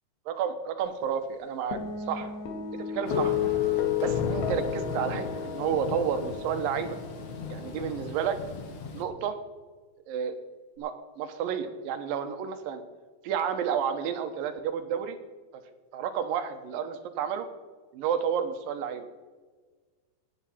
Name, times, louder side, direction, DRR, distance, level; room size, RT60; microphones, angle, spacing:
voice 1, 0.4-1.8 2.1-2.3 2.7-3.4 4.0-7.0 7.5-8.4 8.9-9.4 10.1-10.4 10.8-12.8 13.2-15.2 15.9-17.5 17.9-19.1, right 8 dB, 75° right, 9 dB, 2.6 m, -31 dB
sound 1, 1.7-8.3, left 9 dB, 75° left, 3.7 m, -32 dB
Thunder / Rain, 3.1-9.0, left 3 dB, 55° left, 1.8 m, -37 dB
17.0 x 10.5 x 4.3 m, 1.4 s
omnidirectional pair, 4.3 m